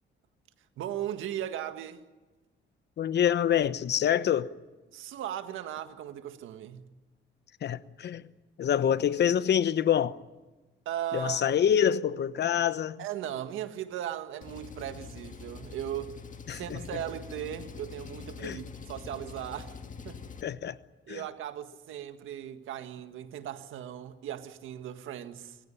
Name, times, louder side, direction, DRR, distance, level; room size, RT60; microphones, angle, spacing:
voice 1, 0.8-2.0 4.9-6.9 10.9-11.6 13.0-16.2 16.5-20.2 21.1-25.6, right 11 dB, 85° right, 1.8 m, -37 dB
voice 2, 3.0-4.5 7.6-8.2 8.6-10.2 11.1-13.0 16.5-16.8 18.4-18.6 20.4-20.8 21.1-21.2, left 9 dB, 60° left, 1.0 m, -26 dB
Engine, 14.4-20.4, left 5 dB, 40° left, 1.8 m, -44 dB
26.5 x 16.0 x 10.0 m
cardioid pair, 90°, 20 cm